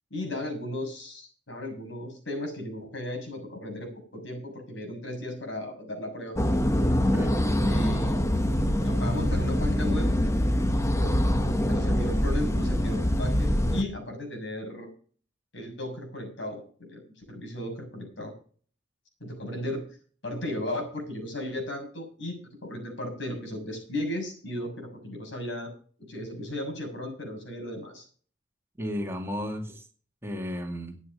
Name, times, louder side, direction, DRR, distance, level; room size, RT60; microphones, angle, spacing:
voice 1, 0.1-6.4 7.6-10.1 10.9-14.9 15.5-18.3 19.2-20.0 20.2-25.7 26.0-28.0, left 1 dB, 75° left, 2 dB, 6.8 m, -35 dB
sound 1, 6.4-13.8, equal, 15° left, 1.1 m, -24 dB
voice 2, 28.8-29.9 30.2-31.0, equal, 15° right, 3 dB, 2.3 m, -33 dB
12.0 x 9.6 x 5.6 m, 0.42 s
head